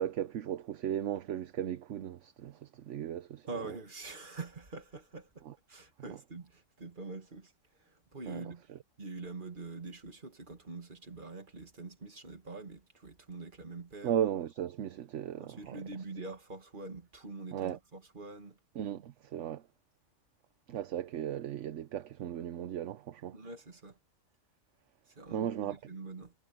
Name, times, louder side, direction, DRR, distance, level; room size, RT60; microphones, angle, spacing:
voice 1, 0.0-3.5 5.5-5.6 8.3-8.4 14.0-15.8 17.5-17.8 18.8-19.6 20.7-23.4 25.3-25.8, right 10 dB, 65° right, 1.0 m, -36 dB
voice 2, 3.4-8.7 9.0-14.1 15.4-18.6 23.3-24.0 25.1-26.3, right 3 dB, 35° right, 2.2 m, -45 dB
omnidirectional pair, 1.5 m